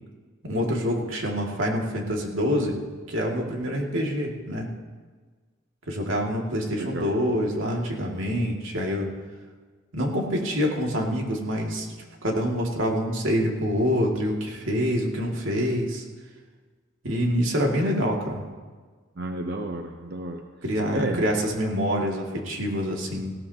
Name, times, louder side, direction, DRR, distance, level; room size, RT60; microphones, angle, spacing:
voice 1, 0.4-2.8 3.1-4.7 5.9-9.1 9.9-11.9 12.2-16.0 17.0-18.4 20.6-23.3, equal, 85° right, -1 dB, 2.3 m, -26 dB
voice 2, 6.7-7.2 19.2-20.4 20.9-21.3, right 2 dB, 55° right, 4 dB, 0.7 m, -31 dB
18.5 x 17.0 x 2.9 m, 1.5 s
head